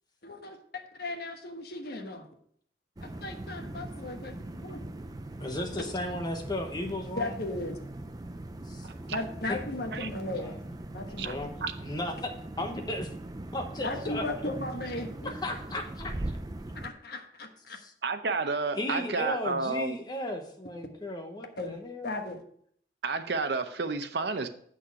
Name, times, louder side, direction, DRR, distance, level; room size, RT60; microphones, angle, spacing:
voice 1, 0.2-2.3 3.0-4.9 7.2-7.8 9.1-10.6 10.9-11.3 13.8-15.3 16.7-17.8 21.6-21.8 22.0-22.4, left 2 dB, 55° left, 1.2 m, -36 dB
sound 1, 3.0-16.9, right 1 dB, 20° right, 0.5 m, -40 dB
voice 2, 5.4-7.3 8.6-9.2 9.5-9.6 10.4-10.6 11.1-11.5 11.8-13.1 13.5-14.5 15.2-16.4 17.7-17.9 18.7-22.2, left 1 dB, 20° left, 1.1 m, -35 dB
voice 3, 8.8-9.2 9.9-10.1 11.2-11.3 11.6-11.7 18.0-20.0 23.0-24.5, right 4 dB, 65° right, 0.7 m, -31 dB
8.1 x 6.2 x 4.7 m
head